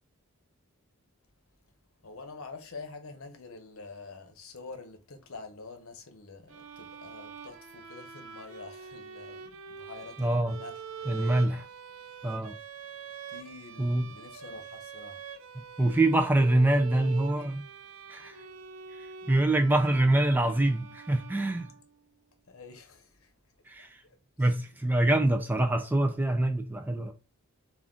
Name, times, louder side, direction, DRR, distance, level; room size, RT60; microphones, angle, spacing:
voice 1, 2.0-11.5 13.3-15.2 22.5-23.3 23.8-24.6, left 3 dB, 70° left, 0.8 m, -47 dB
sound 1, 6.5-22.1, right 6 dB, 65° right, 0.5 m, -45 dB
voice 2, 10.2-10.6 11.1-11.7 12.2-12.6 13.8-14.1 15.6-17.6 18.1-18.4 18.9-21.7 23.7-24.0 24.4-27.1, right 1 dB, 10° right, 0.3 m, -25 dB
3.7 x 2.4 x 3.5 m
head